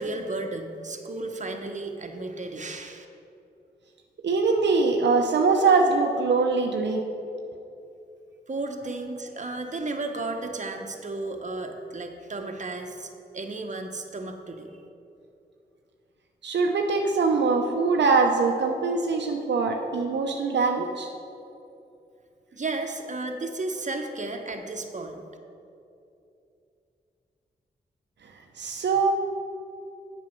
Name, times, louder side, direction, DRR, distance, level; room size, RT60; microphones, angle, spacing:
voice 1, 0.0-3.1 8.5-14.7 22.5-25.3, right 2 dB, 40° right, 4 dB, 1.0 m, -33 dB
voice 2, 4.2-7.0 16.4-21.1 28.6-29.1, right 4 dB, 75° right, 2 dB, 0.6 m, -23 dB
7.4 x 5.4 x 7.4 m, 2.7 s
cardioid pair, 45°, 18 cm